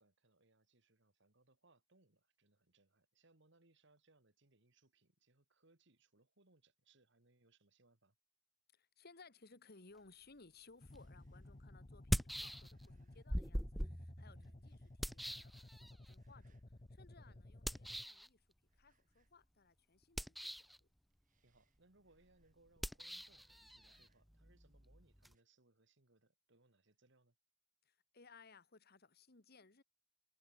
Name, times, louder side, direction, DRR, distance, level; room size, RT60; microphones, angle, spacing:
voice 1, 0.0-8.1 14.3-14.6 17.2-17.4 21.4-27.3, right 2 dB, 65° right, 2.7 m, -72 dB
voice 2, 8.7-16.6 16.9-18.4 18.7-20.9 27.9-29.8, left 4 dB, 55° left, 1.9 m, -63 dB
sound 1, 10.7-14.1 14.5-15.8 16.1-16.8 17.8-19.6 19.8-20.4 20.9-22.8 23.1-24.5 25.2-25.4, right 6 dB, 40° right, 8.0 m, -85 dB
sound 2, 10.8-18.1, left 1 dB, 35° left, 1.0 m, -57 dB
sound 3, 10.9-11.0 11.9-13.0 13.3-16.1 17.6-18.3 20.0-20.8 22.8-25.3, equal, ahead, 0.3 m, -42 dB
head